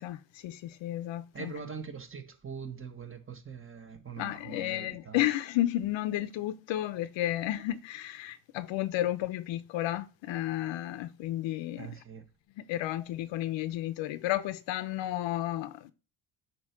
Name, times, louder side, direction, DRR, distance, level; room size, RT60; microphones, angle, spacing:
voice 1, 0.0-1.5 4.2-12.0 12.6-15.9, left 14 dB, 75° left, 0.8 m, -32 dB
voice 2, 1.3-5.2 11.8-12.2, right 6 dB, 30° right, 1.7 m, -42 dB
8.8 x 3.0 x 6.0 m
cardioid pair, 95°, 45 cm